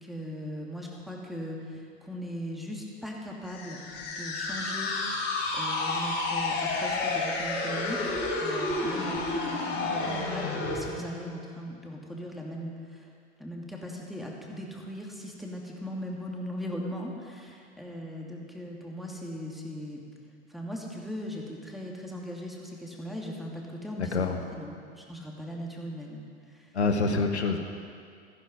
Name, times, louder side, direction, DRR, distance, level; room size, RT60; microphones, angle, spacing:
voice 1, 0.0-5.0 5.5-8.0 8.4-13.1 13.4-20.0 20.5-26.7, equal, ahead, -2 dB, 2.5 m, -39 dB
sound 1, 3.4-10.9, left 3 dB, 40° left, 5.0 m, -30 dB
voice 2, 26.7-27.6, left 4 dB, 75° left, 5 dB, 1.3 m, -26 dB
15.5 x 15.5 x 5.4 m, 2.3 s
figure-of-eight pair, 85°, 33 cm